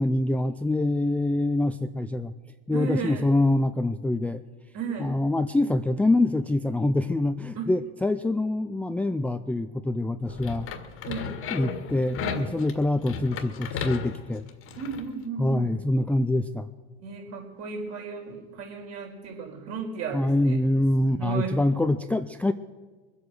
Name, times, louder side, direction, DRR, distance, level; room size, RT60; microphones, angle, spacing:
voice 1, 0.0-2.3 2.7-4.4 5.0-10.7 11.5-14.4 15.4-16.7 20.1-22.5, left 2 dB, 5° left, 9 dB, 0.4 m, -25 dB
voice 2, 2.7-3.3 4.7-5.2 7.5-7.7 11.0-11.4 14.8-15.7 17.0-20.6 21.0-21.6, right 5 dB, 50° right, 1 dB, 4.5 m, -34 dB
sound 1, 10.3-15.1, left 5 dB, 40° left, 1.8 m, -35 dB
22.0 x 8.3 x 6.4 m, 1.4 s
hypercardioid pair, 100°, 32 cm